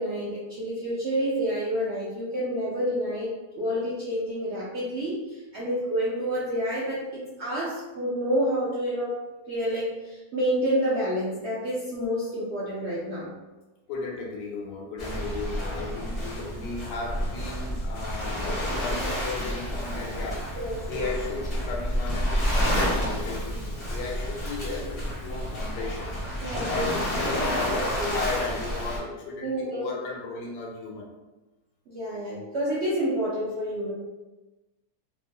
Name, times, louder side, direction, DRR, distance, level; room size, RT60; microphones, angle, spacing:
voice 1, 0.0-9.1 9.5-13.3 20.5-21.1 26.4-26.9 27.2-27.5 27.8-28.2 29.4-29.9 31.9-33.9, equal, 70° right, -7 dB, 0.6 m, -29 dB
voice 2, 13.9-20.5 20.9-26.1 26.5-31.1, left 3 dB, 85° left, -1 dB, 1.2 m, -35 dB
Waves surf, 15.0-29.0, equal, 35° left, 0.5 m, -30 dB
3.0 x 2.1 x 2.6 m, 1.1 s
omnidirectional pair, 1.8 m